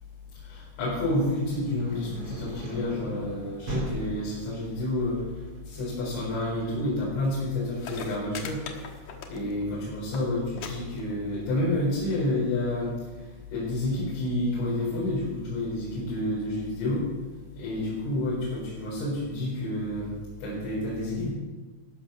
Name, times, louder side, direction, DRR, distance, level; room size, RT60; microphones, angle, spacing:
voice 1, 0.5-5.2 5.7-8.6 9.3-12.9 13.5-17.0 17.6-20.1 20.4-21.3, left 1 dB, 80° left, -6 dB, 6.7 m, -29 dB
sound 1, 0.8-10.6, equal, 35° right, 3.0 m, -40 dB
sound 2, 7.5-7.6 7.8-9.7 10.0-10.2 10.6-10.7 11.0-11.5 12.3-12.4, left 6 dB, 65° left, 2.1 m, -39 dB
14.5 x 12.5 x 5.9 m, 1.2 s
omnidirectional pair, 5.5 m